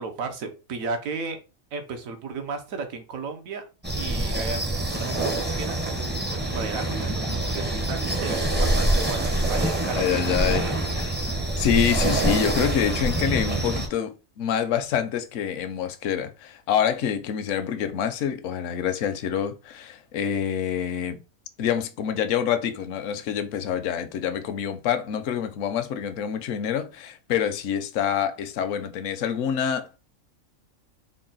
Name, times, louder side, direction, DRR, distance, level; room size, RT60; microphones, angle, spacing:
voice 1, 0.0-1.4 1.7-3.6 3.9-10.7, right 4 dB, 80° right, 1.2 m, -34 dB
sound 1, 3.8-13.9, right 1 dB, 15° right, 0.4 m, -25 dB
voice 2, 9.9-10.6 11.0-11.1 11.6-21.2 21.6-30.0, left 8 dB, 70° left, 0.9 m, -26 dB
3.9 x 2.2 x 3.8 m
omnidirectional pair, 1.4 m